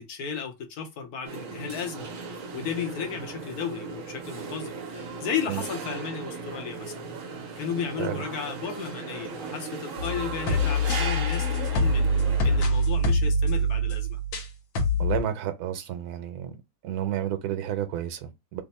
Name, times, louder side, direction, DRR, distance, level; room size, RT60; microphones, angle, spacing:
voice 1, 0.0-2.1 2.5-7.1 7.6-12.1 12.4-14.2, left 7 dB, 85° left, 1.3 m, -34 dB
sound 1, 1.2-12.6, right 5 dB, 65° right, 1.1 m, -37 dB
sound 2, 10.0-14.5 14.8-15.2, equal, 65° left, 1.1 m, -24 dB
voice 2, 15.0-16.6 16.8-18.6, right 10 dB, 85° right, 1.2 m, -31 dB
3.3 x 2.1 x 4.1 m
omnidirectional pair, 1.6 m